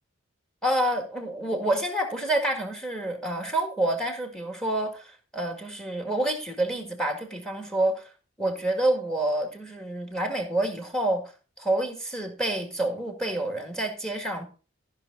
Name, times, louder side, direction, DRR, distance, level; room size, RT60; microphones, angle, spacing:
voice 1, 0.6-8.1 8.4-11.3 11.6-14.5, right 1 dB, 5° left, 4 dB, 1.9 m, -28 dB
14.0 x 5.7 x 4.0 m, 0.35 s
head